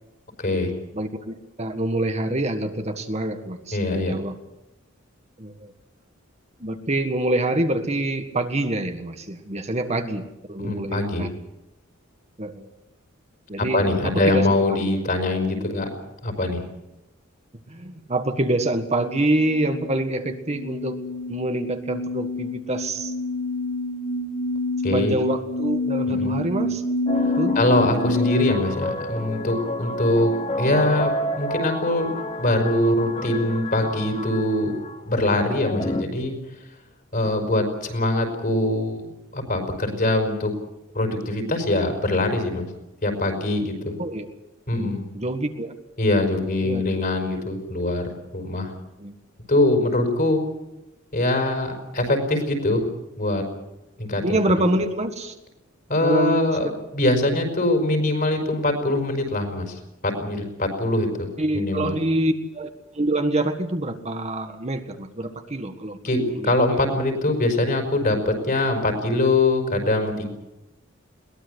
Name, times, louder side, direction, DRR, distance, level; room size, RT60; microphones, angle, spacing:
voice 1, 0.4-0.8 3.7-4.1 10.6-11.3 13.6-15.9 16.2-16.6 24.8-25.2 26.1-26.4 27.6-32.1 32.4-34.7 35.0-36.3 37.1-40.5 40.9-42.7 43.0-43.9 44.7-45.0 46.0-48.7 49.5-50.4 51.1-52.8 53.2-53.4 54.0-54.7 55.9-61.3 61.5-62.0 66.0-70.3, left 2 dB, 45° left, 4 dB, 5.3 m, -23 dB
voice 2, 0.9-4.4 5.4-5.7 6.6-11.3 12.4-12.7 13.5-14.8 17.7-21.0 21.3-23.1 24.9-26.8 27.4-27.6 44.0-44.3 45.1-45.7 46.6-46.8 49.0-49.1 54.2-55.3 56.0-56.4 61.4-66.0 66.4-66.5, right 1 dB, 35° right, 6 dB, 1.7 m, -26 dB
sound 1, 19.3-28.5, left 2 dB, 60° left, 6.2 m, -28 dB
sound 2, 27.1-36.0, left 1 dB, 30° left, 1.7 m, -30 dB
22.0 x 19.5 x 8.2 m, 0.93 s
head